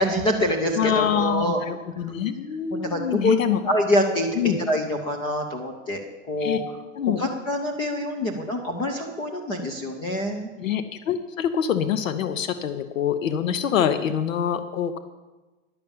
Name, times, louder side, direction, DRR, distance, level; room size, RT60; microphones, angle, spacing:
voice 1, 0.0-1.6 2.7-3.4 3.6-4.3 4.7-6.0 6.3-6.6 7.2-10.5, equal, 15° left, 3 dB, 0.5 m, -25 dB
voice 2, 0.7-3.6 4.4-4.6 6.4-6.6 7.0-7.2 10.6-15.0, left 9 dB, 80° left, 11 dB, 1.0 m, -25 dB
10.5 x 6.8 x 8.7 m, 1.2 s
hypercardioid pair, 155°, 39 cm